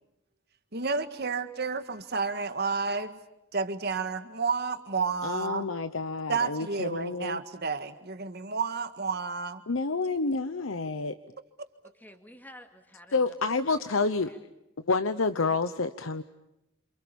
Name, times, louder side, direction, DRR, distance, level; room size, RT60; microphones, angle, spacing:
voice 1, 0.7-3.2 3.5-5.7 6.3-9.6, right 5 dB, 55° right, 9 dB, 1.7 m, -31 dB
voice 2, 5.2-7.4 9.7-11.2 13.1-14.3 14.8-16.2, left 3 dB, 85° left, 10 dB, 0.9 m, -29 dB
voice 3, 11.8-14.4, equal, 10° left, 6 dB, 2.3 m, -52 dB
29.0 x 27.5 x 7.1 m, 0.88 s
head